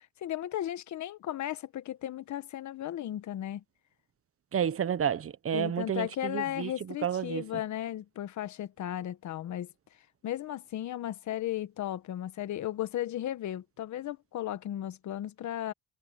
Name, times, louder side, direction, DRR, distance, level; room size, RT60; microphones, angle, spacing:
voice 1, 0.0-3.6 5.5-9.7 10.2-15.7, left 12 dB, 70° left, 1.3 m, -35 dB
voice 2, 4.5-6.7 7.0-7.5, right 8 dB, 50° right, 1.3 m, -30 dB
cardioid pair, 90°, 30 cm